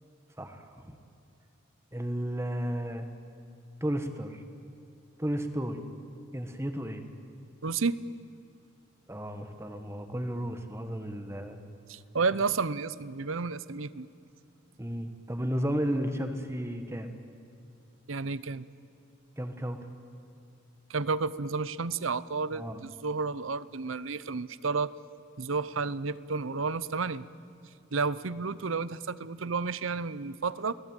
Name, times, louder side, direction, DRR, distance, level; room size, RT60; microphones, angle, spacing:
voice 1, 0.4-1.0 1.9-3.1 3.8-4.4 5.2-5.8 6.3-7.0 9.1-11.6 14.8-17.1 19.4-19.8 22.5-22.8, equal, 15° right, 7 dB, 1.6 m, -33 dB
voice 2, 7.6-8.0 11.9-14.1 18.1-18.7 20.9-24.9 25.4-27.3 27.9-30.7, right 4 dB, 80° right, 17 dB, 0.8 m, -31 dB
29.5 x 19.5 x 9.1 m, 2.6 s
head